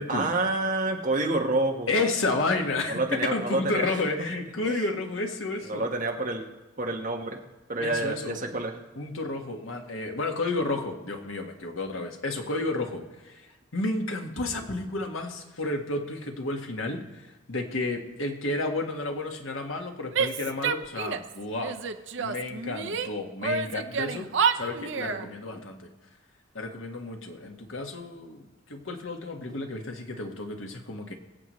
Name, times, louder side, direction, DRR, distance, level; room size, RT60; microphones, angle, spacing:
voice 1, 0.1-2.0 2.9-3.9 4.6-4.9 5.6-6.5 6.8-7.4 7.7-8.7, right 2 dB, 40° right, 2 dB, 1.3 m, -28 dB
voice 2, 1.9-5.9 7.8-8.4 8.9-21.8 22.2-24.3 24.5-25.9 26.5-31.1, left 2 dB, 90° left, 3 dB, 1.6 m, -31 dB
Female speech woman speaking / Yell, 20.1-21.3 21.6-23.1 23.4-25.3, right 6 dB, 65° right, 0.7 m, -29 dB
23.5 x 8.2 x 3.2 m, 1.1 s
head